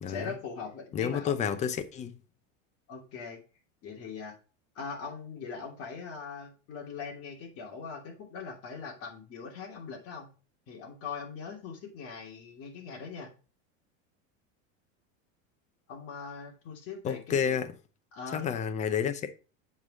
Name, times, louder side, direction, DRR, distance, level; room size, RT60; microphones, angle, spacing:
voice 1, 0.1-1.5 2.9-3.4 3.8-4.4 4.7-10.3 10.7-13.3 15.9-17.6 18.1-18.5, left 5 dB, 35° left, 2.8 m, -41 dB
voice 2, 0.9-2.2 17.0-17.7 18.3-19.3, left 8 dB, 20° left, 0.6 m, -30 dB
7.3 x 4.8 x 6.2 m
supercardioid pair, 165°, 38 cm